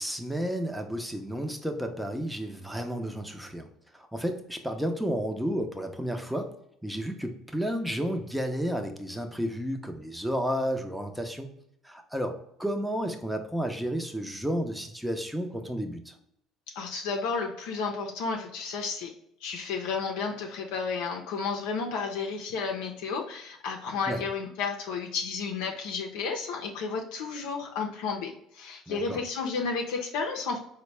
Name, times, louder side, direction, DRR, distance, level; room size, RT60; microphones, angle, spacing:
voice 1, 0.0-3.7 3.9-6.5 6.8-11.5 11.8-16.1 24.1-24.2 28.9-29.2, equal, ahead, 5 dB, 0.6 m, -32 dB
voice 2, 16.8-19.1 19.4-30.6, left 5 dB, 80° left, 1 dB, 0.5 m, -32 dB
4.0 x 2.1 x 3.2 m, 0.73 s
supercardioid pair, 80°, 0 cm